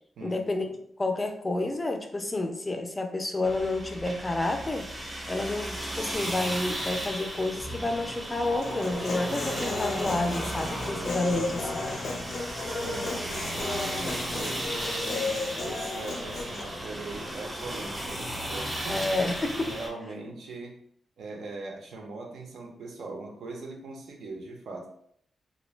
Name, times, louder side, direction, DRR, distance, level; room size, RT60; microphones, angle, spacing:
voice 1, 0.2-0.7 1.0-4.9 5.3-11.8 18.9-19.7, left 2 dB, 20° left, 5 dB, 0.3 m, -30 dB
sound 1, 3.4-19.9, right 1 dB, 20° right, 0.7 m, -35 dB
Human voice, 8.6-16.6, left 3 dB, 75° left, 0.5 m, -34 dB
voice 2, 11.3-12.0 12.6-13.6 14.3-19.1 19.7-20.8 21.2-24.9, right 3 dB, 80° right, 2 dB, 0.6 m, -41 dB
2.5 x 2.1 x 3.1 m, 0.67 s
wide cardioid pair, 130°, 0 cm